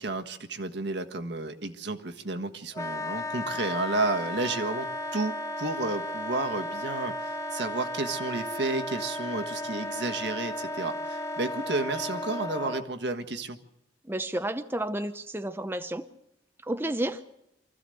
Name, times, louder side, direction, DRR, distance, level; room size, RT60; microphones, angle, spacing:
voice 1, 0.0-13.6, right 2 dB, 65° right, 7 dB, 1.6 m, -32 dB
Wind instrument woodwind instrument, 2.7-12.9, left 1 dB, 15° left, 1.2 m, -34 dB
voice 2, 14.1-16.1 16.6-17.2, right 1 dB, 10° right, 8 dB, 0.7 m, -31 dB
24.5 x 15.0 x 7.8 m, 0.84 s
head